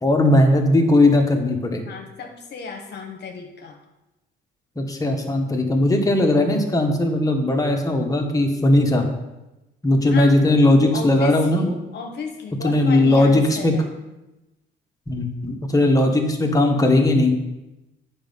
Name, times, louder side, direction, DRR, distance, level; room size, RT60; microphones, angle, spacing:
voice 1, 0.0-1.8 4.7-9.0 9.8-11.7 12.6-13.8 15.1-17.3, left 1 dB, 15° left, 2 dB, 1.7 m, -18 dB
voice 2, 1.9-3.8 10.1-10.4 10.9-13.9, left 5 dB, 60° left, 3 dB, 1.1 m, -33 dB
8.8 x 5.5 x 5.5 m, 0.98 s
cardioid pair, 90°, 20 cm